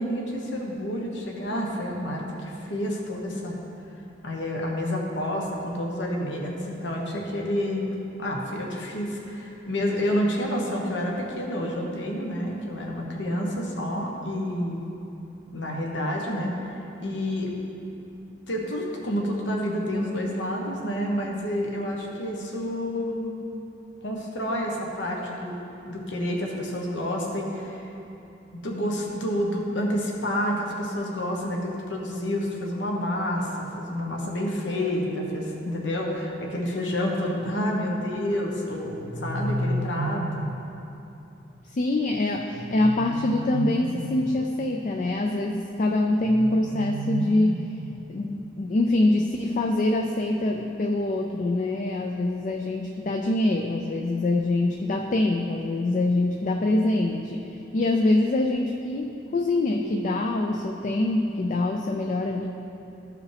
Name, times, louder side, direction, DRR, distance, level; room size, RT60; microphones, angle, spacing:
voice 1, 0.0-3.6 4.2-7.9 8.2-14.8 15.5-16.7 17.0-17.6 18.5-23.3 24.0-27.8 28.5-40.4, equal, 80° left, -1 dB, 1.1 m, -29 dB
sound 1, 38.8-40.7 42.5-44.4 46.2-48.2, right 1 dB, 75° right, 0.4 m, -32 dB
voice 2, 41.7-47.8 48.1-57.4 57.7-62.4, left 2 dB, 40° left, 2 dB, 0.4 m, -24 dB
13.5 x 4.9 x 3.4 m, 2.9 s
head